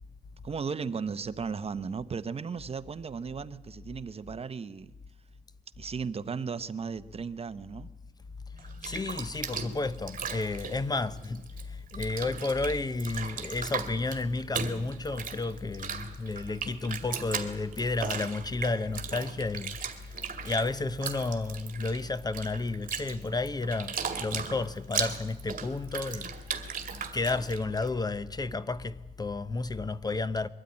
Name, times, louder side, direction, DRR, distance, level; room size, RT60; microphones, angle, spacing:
voice 1, 0.4-4.9 5.8-7.9, right 5 dB, 40° right, 0.8 m, -35 dB
voice 2, 8.5-26.4 27.1-30.5, left 3 dB, 25° left, 0.6 m, -32 dB
Bathtub (filling or washing), 8.6-11.6 11.9-27.9, right 6 dB, 55° right, 2.2 m, -37 dB
22.5 x 13.0 x 9.7 m
cardioid pair, 110°, 16 cm